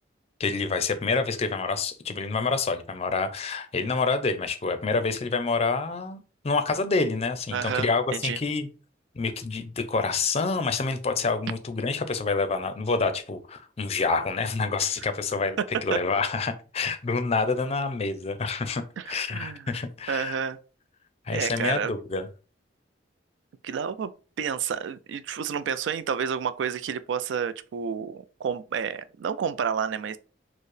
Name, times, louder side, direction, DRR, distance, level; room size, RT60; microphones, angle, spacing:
voice 1, 0.4-8.7 9.2-20.4 21.3-22.3, left 4 dB, 35° left, 0.4 m, -27 dB
voice 2, 7.5-8.4 15.9-16.0 19.0-19.7 20.1-20.6 21.3-21.9 23.6-24.1 24.4-30.2, right 7 dB, 85° right, 0.3 m, -30 dB
4.4 x 2.0 x 3.1 m
head